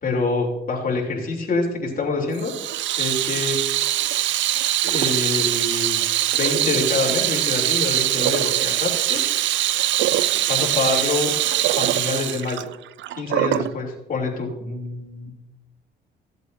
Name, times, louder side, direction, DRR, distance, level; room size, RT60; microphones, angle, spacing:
voice 1, 0.0-2.5 3.0-3.6 4.8-6.0 6.4-9.2 10.5-11.3 11.8-12.7 13.2-14.5, left 3 dB, 45° left, -1 dB, 3.2 m, -25 dB
Water tap faucet / Sink (filling or washing), 2.4-13.7, right 13 dB, 70° right, 0.4 m, -22 dB
voice 2, 14.6-15.3, left 1 dB, 40° right, 3 dB, 2.3 m, -35 dB
16.0 x 8.1 x 2.7 m, 0.94 s
cardioid pair, 90°, 20 cm